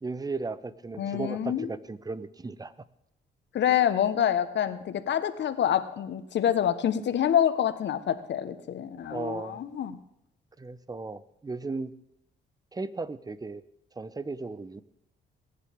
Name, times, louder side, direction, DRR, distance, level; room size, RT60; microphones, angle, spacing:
voice 1, 0.0-2.7 9.1-9.6 10.6-11.9 12.7-13.6 13.9-14.8, right 3 dB, 20° right, 15 dB, 0.9 m, -36 dB
voice 2, 1.0-1.7 3.5-10.0, left 10 dB, 65° left, 11 dB, 1.3 m, -27 dB
20.0 x 10.5 x 3.6 m, 0.82 s
cardioid pair, 90°, 20 cm